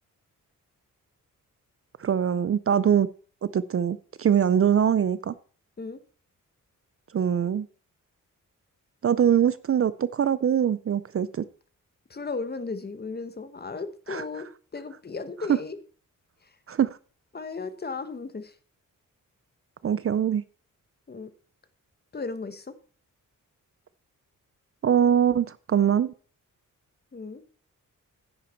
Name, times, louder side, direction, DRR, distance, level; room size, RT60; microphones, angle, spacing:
voice 1, 2.0-3.1 3.5-5.3 7.1-7.7 9.0-11.4 14.1-14.2 15.5-15.6 16.7-16.9 19.8-20.4 24.8-26.1, right 8 dB, 45° right, 0.5 m, -23 dB
voice 2, 12.1-15.8 17.3-18.5 21.1-21.3 22.1-22.7 27.1-27.4, left 4 dB, 30° left, 1.1 m, -35 dB
10.5 x 8.8 x 4.4 m
wide cardioid pair, 145°, 32 cm